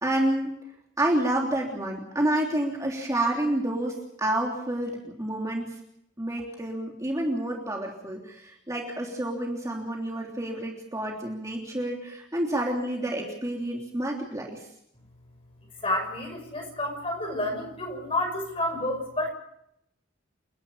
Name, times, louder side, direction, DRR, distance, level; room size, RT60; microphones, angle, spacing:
voice 1, 0.0-0.6 1.0-5.7 6.2-14.6, right 1 dB, 15° right, -1 dB, 3.3 m, -29 dB
voice 2, 15.8-19.3, left 1 dB, 30° left, 3 dB, 6.5 m, -30 dB
29.5 x 11.5 x 8.8 m, 0.77 s
head